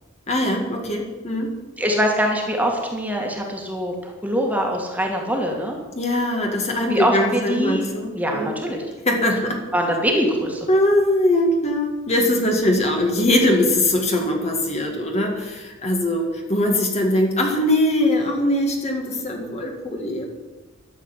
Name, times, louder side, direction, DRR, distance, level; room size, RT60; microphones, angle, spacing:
voice 1, 0.3-1.5 6.0-8.5 9.1-9.6 10.7-20.3, left 1 dB, 30° left, 1 dB, 2.0 m, -21 dB
voice 2, 1.8-5.8 6.9-7.8 8.1-8.8 9.7-10.7, equal, 5° right, 0 dB, 2.1 m, -23 dB
13.0 x 7.7 x 9.0 m, 1.2 s
head